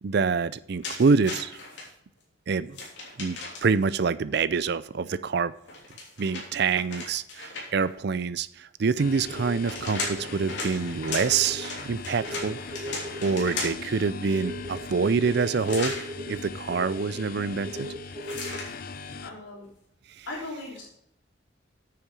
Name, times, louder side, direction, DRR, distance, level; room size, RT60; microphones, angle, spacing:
voice 1, 0.0-1.6 2.5-2.8 3.2-5.5 6.2-12.6 13.2-15.9 16.3-17.9 20.2-20.3, right 5 dB, 55° right, 16 dB, 0.4 m, -26 dB
sound 1, 0.8-1.9 2.7-3.8 5.6-7.9 9.3-13.9 15.7-16.1 18.2-18.7, left 3 dB, 65° left, 3.3 m, -36 dB
sound 2, 9.0-19.3, left 4 dB, 45° left, 0.6 m, -40 dB
sound 3, 9.3-10.8 11.1-11.6 12.2-18.6 19.3-19.6, equal, 15° right, 2.0 m, -39 dB
voice 2, 19.2-19.7 20.3-20.9, left 2 dB, 80° left, -3 dB, 3.4 m, -38 dB
9.1 x 6.9 x 4.7 m, 0.76 s
head